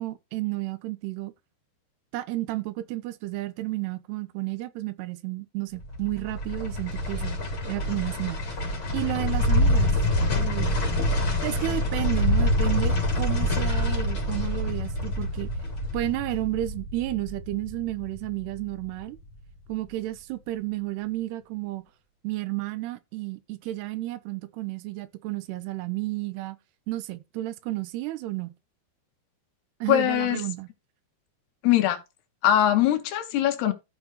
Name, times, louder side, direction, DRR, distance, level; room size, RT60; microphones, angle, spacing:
voice 1, 0.0-1.3 2.1-7.4 7.7-8.4 8.9-9.9 10.3-10.7 11.4-15.5 15.9-19.2 19.7-21.8 22.2-26.6 26.9-28.5 29.8-30.7, right 17 dB, 85° right, 3.0 m, -32 dB
sound 1, 5.8-19.0 19.3-19.4, left 1 dB, 35° left, 3.9 m, -26 dB
voice 2, 29.9-30.4 31.6-32.0 32.4-33.7, left 12 dB, 80° left, 3.5 m, -21 dB
14.5 x 5.9 x 3.0 m
omnidirectional pair, 4.7 m